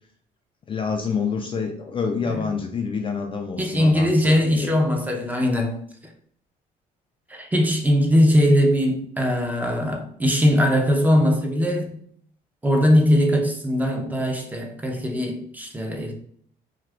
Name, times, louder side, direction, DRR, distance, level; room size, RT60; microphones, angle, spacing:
voice 1, 0.7-4.7, left 5 dB, 30° left, 0.4 m, -27 dB
voice 2, 3.6-5.8 7.3-11.9 12.6-16.1, equal, 10° right, 0.6 m, -20 dB
2.7 x 2.4 x 3.3 m
cardioid pair, 110°, 17 cm